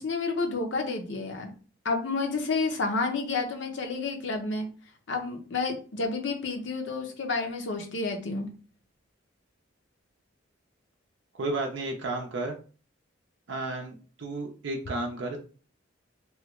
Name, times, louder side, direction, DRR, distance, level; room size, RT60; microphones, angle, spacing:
voice 1, 0.0-1.5 1.8-4.7 5.1-8.5, left 3 dB, 70° left, 4 dB, 0.6 m, -30 dB
voice 2, 11.4-12.6 13.5-15.4, right 2 dB, 65° right, 1 dB, 0.5 m, -32 dB
3.1 x 2.3 x 3.0 m, 0.38 s
head